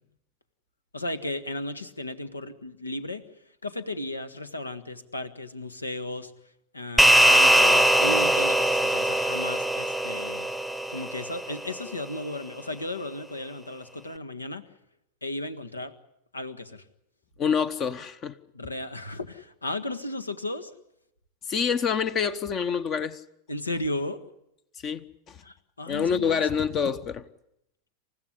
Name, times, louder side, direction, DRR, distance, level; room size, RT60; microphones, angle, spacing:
voice 1, 0.9-3.3 3.6-6.3 6.7-10.5 10.9-14.6 15.2-15.9 16.3-16.8 18.5-20.7 23.5-24.2 25.4-26.4, left 1 dB, 80° left, 1.7 m, -35 dB
sound 1, 7.0-11.6, right 1 dB, ahead, 1.0 m, -21 dB
voice 2, 17.4-18.3 21.5-23.2 24.8-25.4 25.9-27.2, left 6 dB, 30° left, 1.0 m, -27 dB
28.5 x 15.5 x 9.8 m
figure-of-eight pair, 90°, 0 cm